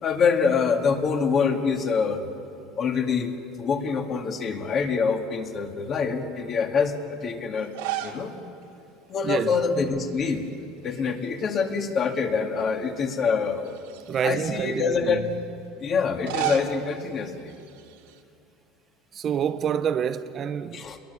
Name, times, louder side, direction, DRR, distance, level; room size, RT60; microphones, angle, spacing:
voice 1, 0.0-2.3 2.8-7.8 8.0-8.3 9.1-10.5 10.8-13.6 14.2-15.2 15.8-17.5 20.7-21.0, left 5 dB, 35° left, 2.3 m, -25 dB
sound 1, 7.6-8.3 8.6-8.7 10.1-10.6 10.9-12.0 12.6-12.7 13.6-14.7 16.0-18.2, right 12 dB, 90° right, 2.4 m, -35 dB
voice 2, 9.2-9.6 14.1-15.2 19.1-20.8, right 8 dB, 35° right, 0.7 m, -27 dB
28.0 x 21.5 x 7.0 m
supercardioid pair, 135°, 0 cm